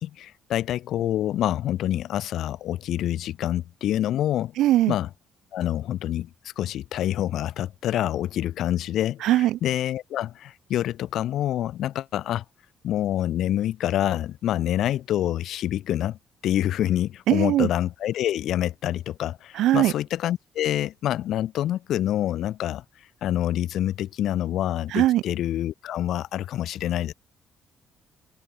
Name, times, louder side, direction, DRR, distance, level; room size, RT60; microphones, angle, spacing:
voice 1, 0.0-4.5 4.9-5.1 5.5-12.4 12.8-16.2 16.4-22.8 23.2-27.1, left 12 dB, 70° left, 1.0 m, -27 dB
voice 2, 4.6-5.0 9.2-9.6 17.3-17.7 19.5-19.9 24.9-25.2, right 14 dB, 85° right, 0.8 m, -20 dB
open air
cardioid pair, 120°, 0 cm